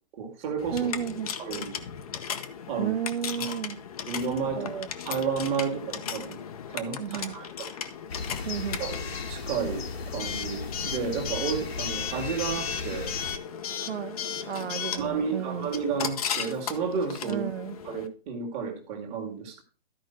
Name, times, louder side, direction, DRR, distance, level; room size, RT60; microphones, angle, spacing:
voice 1, 0.1-1.8 2.7-3.0 3.4-3.6 4.1-4.7 5.0-6.4 6.7-7.7 8.8-9.8 10.1-13.1 14.4-14.5 15.0-17.4 17.8-19.6, right 6 dB, 20° right, 2.0 m, -32 dB
Coin (dropping) / Alarm, 0.6-18.1, left 8 dB, 35° left, 0.9 m, -36 dB
voice 2, 0.7-1.3 2.8-3.8 4.6-4.9 7.0-7.4 8.5-8.8 13.9-14.2 14.5-15.7 17.3-17.8, right 9 dB, 90° right, 0.5 m, -32 dB
sound 1, 8.1-13.4, left 4 dB, 75° left, 1.6 m, -36 dB
13.0 x 5.1 x 4.5 m
hypercardioid pair, 155°, 31 cm